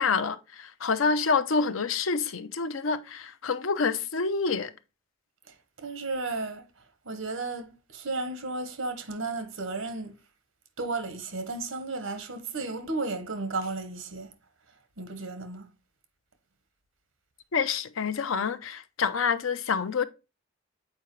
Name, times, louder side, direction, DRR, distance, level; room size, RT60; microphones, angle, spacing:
voice 1, 0.0-4.7 17.5-20.0, left 5 dB, 90° left, 0.6 m, -27 dB
voice 2, 5.5-6.7 7.0-10.2 10.8-14.3 15.0-15.7, right 3 dB, 85° right, 1.2 m, -34 dB
7.3 x 4.6 x 3.1 m
head